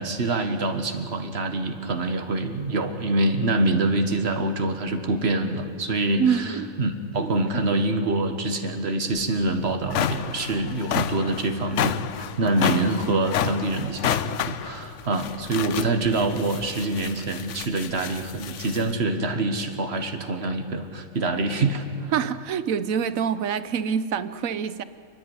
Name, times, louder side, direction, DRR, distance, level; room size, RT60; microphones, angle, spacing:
voice 1, 0.0-22.1, right 2 dB, 50° right, 6 dB, 1.8 m, -25 dB
voice 2, 6.2-6.7 22.1-24.8, right 7 dB, 75° right, 14 dB, 1.2 m, -25 dB
sound 1, 9.2-9.3 9.7-18.9, left 9 dB, 65° left, 1.0 m, -30 dB
29.5 x 10.5 x 9.7 m, 2.5 s
omnidirectional pair, 1.4 m